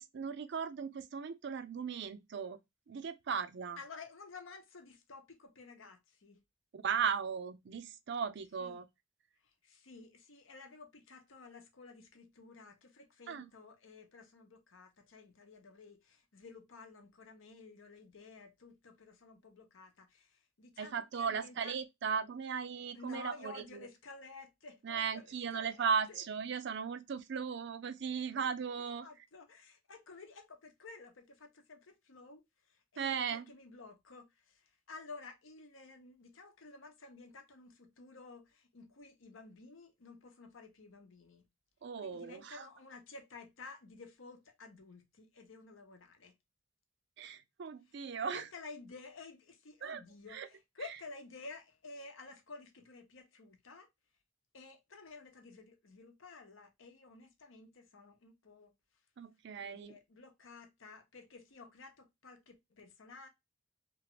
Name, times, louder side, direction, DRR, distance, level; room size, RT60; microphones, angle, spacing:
voice 1, 0.0-2.6 2.9-3.8 6.7-8.9 13.3-13.5 20.8-23.9 24.8-29.1 33.0-33.4 41.8-42.7 47.2-48.5 49.8-50.0 50.3-50.5 59.2-60.0, right 6 dB, 60° right, 0.4 m, -37 dB
voice 2, 3.8-6.4 8.6-8.8 9.4-21.7 22.9-26.2 29.0-41.4 42.0-46.3 48.3-53.9 54.5-58.7 59.6-63.3, left 3 dB, 80° left, 0.8 m, -53 dB
2.9 x 2.4 x 2.9 m
head